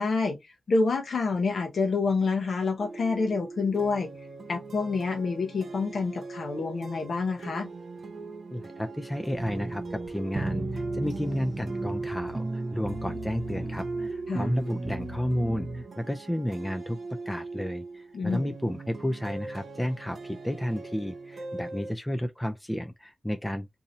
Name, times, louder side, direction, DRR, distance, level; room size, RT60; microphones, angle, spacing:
voice 1, 0.0-4.1 4.5-7.7 14.3-14.5 18.1-18.5, left 4 dB, 75° left, 0.8 m, -28 dB
sound 1, 2.8-21.9, right 3 dB, 75° right, 0.8 m, -40 dB
voice 2, 8.5-23.7, equal, 10° left, 0.4 m, -32 dB
sound 2, 9.4-15.8, right 2 dB, 40° right, 0.7 m, -35 dB
2.7 x 2.6 x 4.0 m
cardioid pair, 60°, 0 cm